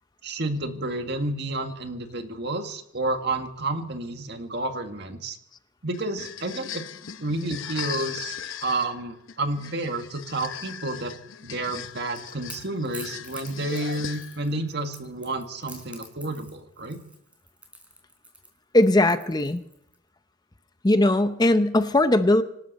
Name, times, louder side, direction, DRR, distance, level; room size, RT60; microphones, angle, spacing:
voice 1, 0.2-5.4 5.8-6.8 7.2-11.1 11.4-17.0, right 2 dB, 55° right, 6 dB, 1.8 m, -30 dB
sound 1, 5.9-14.6, left 8 dB, 85° left, 0.9 m, -39 dB
Crackle / Crack, 11.8-19.9, right 1 dB, 5° right, 3.9 m, -46 dB
voice 2, 18.7-19.6 20.8-22.4, left 1 dB, 20° left, 10 dB, 0.7 m, -19 dB
26.0 x 12.5 x 4.2 m, 0.75 s
head